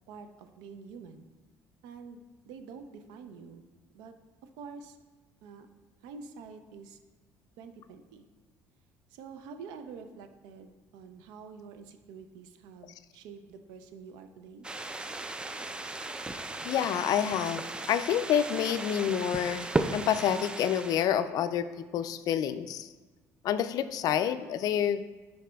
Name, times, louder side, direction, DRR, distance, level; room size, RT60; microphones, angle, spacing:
voice 1, 0.1-1.3 1.8-3.6 3.9-4.1 4.4-5.0 5.4-5.7 6.0-7.0 7.6-8.3 9.1-14.7, right 5 dB, 90° right, 8 dB, 0.5 m, -47 dB
sound 1, 14.6-21.1, right 2 dB, 15° right, 0.3 m, -35 dB
voice 2, 16.6-17.6 17.9-22.9 23.4-25.0, left 9 dB, 60° left, 12 dB, 0.3 m, -28 dB
11.5 x 4.0 x 2.3 m, 1.3 s
cardioid pair, 100°, 7 cm